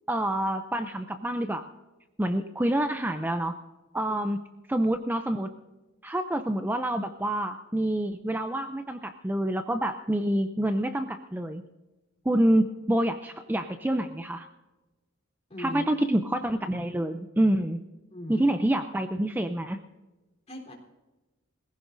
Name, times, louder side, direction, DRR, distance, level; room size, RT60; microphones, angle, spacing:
voice 1, 0.1-1.7 2.2-3.6 3.9-4.4 4.7-5.5 6.0-11.6 12.3-14.5 15.6-17.8 18.3-19.8, right 1 dB, 10° right, 7 dB, 0.5 m, -27 dB
voice 2, 15.5-15.9 18.1-18.5 20.5-20.7, left 1 dB, 30° left, -1 dB, 3.7 m, -39 dB
22.0 x 15.5 x 2.6 m, 1.1 s
head